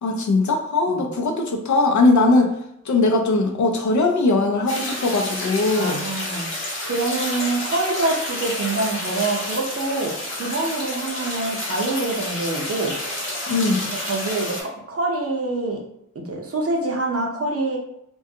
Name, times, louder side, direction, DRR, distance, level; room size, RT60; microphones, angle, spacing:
voice 1, 0.0-2.6 2.8-6.0 13.5-13.9, left 2 dB, 70° left, 2 dB, 0.5 m, -20 dB
sound 1, 4.7-14.6, left 1 dB, 40° left, 0.9 m, -30 dB
voice 2, 5.7-6.5 6.8-12.9 13.9-15.8 16.1-17.8, right 2 dB, 50° right, 0 dB, 0.6 m, -25 dB
2.4 x 2.2 x 2.7 m, 0.76 s
wide cardioid pair, 90°, 31 cm